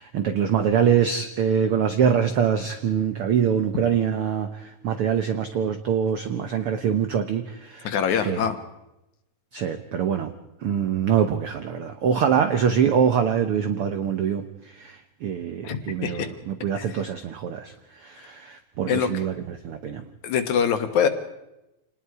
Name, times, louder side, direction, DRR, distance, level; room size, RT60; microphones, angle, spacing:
voice 1, 0.0-7.9 8.2-8.4 9.5-10.3 10.6-20.1, right 7 dB, 75° right, 8 dB, 1.3 m, -24 dB
voice 2, 7.8-8.6 15.6-16.3 16.8-16.9 18.9-19.2 20.2-21.1, left 7 dB, 65° left, 8 dB, 2.6 m, -24 dB
27.5 x 19.5 x 4.8 m, 0.91 s
omnidirectional pair, 3.9 m